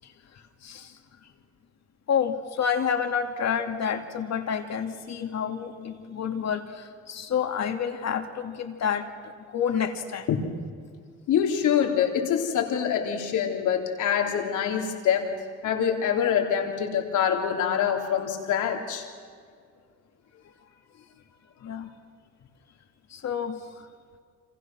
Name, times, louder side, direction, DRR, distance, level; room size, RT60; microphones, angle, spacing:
voice 1, 0.0-1.0 2.1-10.3 21.6-21.9 23.1-23.9, left 7 dB, 60° left, 5 dB, 2.5 m, -29 dB
voice 2, 11.3-15.3 15.6-19.1, left 8 dB, 85° left, 2 dB, 3.5 m, -25 dB
29.5 x 26.0 x 6.2 m, 2.1 s
cardioid pair, 90°, 30 cm